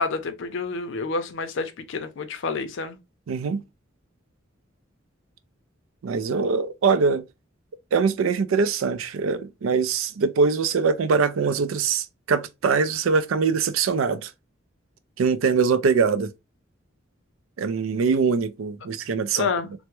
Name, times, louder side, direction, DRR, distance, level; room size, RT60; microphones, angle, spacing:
voice 1, 0.0-3.0 19.4-19.7, left 4 dB, 65° left, 0.5 m, -28 dB
voice 2, 3.3-3.6 6.0-7.2 7.9-14.3 15.2-16.3 17.6-19.5, right 5 dB, 90° right, 0.4 m, -23 dB
3.3 x 2.0 x 2.9 m
head